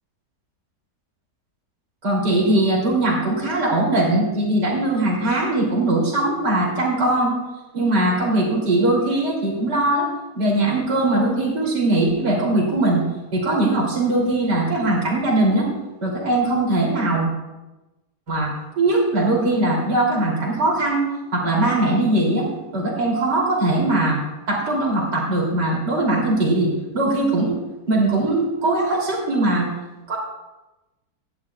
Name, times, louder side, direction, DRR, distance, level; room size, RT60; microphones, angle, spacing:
voice 1, 2.0-7.3 7.7-10.1 10.3-13.0 13.3-15.7 16.0-17.3 18.3-21.0 21.3-22.5 22.7-26.7 26.9-27.6 27.9-29.7 30.1-30.2, right 2 dB, 85° right, -2 dB, 3.7 m, -20 dB
17.0 x 11.5 x 2.4 m, 1.0 s
omnidirectional pair, 1.8 m